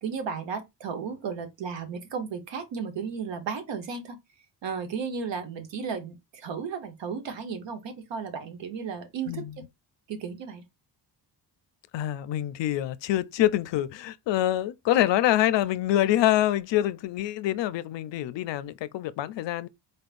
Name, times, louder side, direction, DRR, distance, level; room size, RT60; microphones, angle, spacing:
voice 1, 0.0-4.2 4.6-9.6 10.1-10.6, right 6 dB, 80° right, 1.1 m, -34 dB
voice 2, 11.9-19.7, left 13 dB, 80° left, 0.5 m, -25 dB
4.1 x 3.4 x 2.5 m
wide cardioid pair, 165°, 43 cm